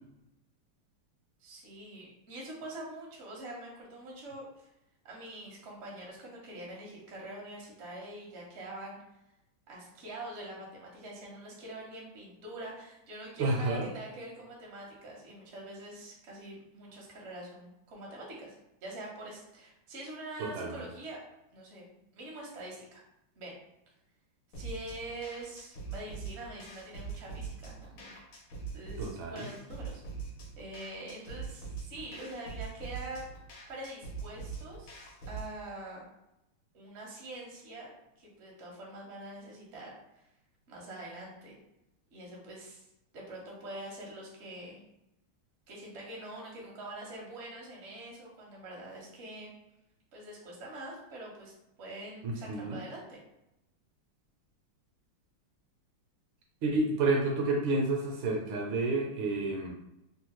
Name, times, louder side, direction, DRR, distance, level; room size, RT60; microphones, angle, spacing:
voice 1, 1.4-4.7 5.0-9.0 9.7-18.6 18.8-21.2 21.5-23.0 23.4-23.5 24.5-28.1 28.7-30.0 30.6-33.3 33.7-34.9 35.3-36.1 36.7-37.9 38.2-39.9 40.7-41.6 42.1-42.9 43.1-44.8 45.7-49.5 50.1-51.5 51.8-53.2, right 1 dB, 55° right, -3 dB, 0.7 m, -44 dB
voice 2, 13.4-13.9 20.4-20.8 29.0-29.5 52.2-52.8 56.6-59.7, right 2 dB, 75° right, 0 dB, 1.3 m, -30 dB
sound 1, 24.5-35.5, right 5 dB, 75° left, 1.5 m, -43 dB
3.6 x 2.2 x 2.9 m, 0.87 s
omnidirectional pair, 2.4 m